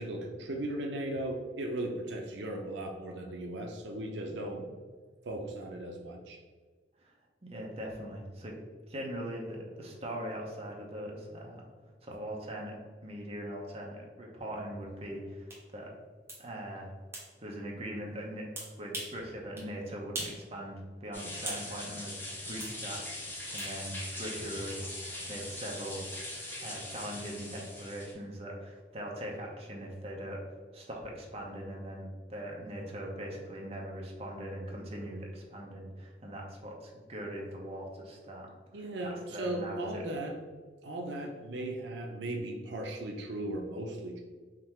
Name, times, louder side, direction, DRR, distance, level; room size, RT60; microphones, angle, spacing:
voice 1, 0.0-4.6 5.2-6.4 38.7-40.4 40.8-44.2, right 1 dB, 85° right, 1 dB, 0.5 m, -37 dB
voice 2, 7.4-8.6 8.9-11.6 12.0-15.9 16.4-16.9 17.4-18.5 18.8-22.2 22.4-26.0 26.6-30.4 30.7-38.5 38.7-40.0, equal, 35° right, -1 dB, 0.8 m, -41 dB
sound 1, 15.5-15.6 16.3-16.4 17.1-17.3 18.6-19.2 19.6-19.7 20.1-20.4 20.8-21.7 22.6-22.8 23.6-23.7, right 1 dB, 15° right, 1.0 m, -40 dB
sound 2, 21.1-28.1, left 1 dB, 15° left, 0.9 m, -41 dB
3.7 x 2.7 x 4.4 m, 1.5 s
head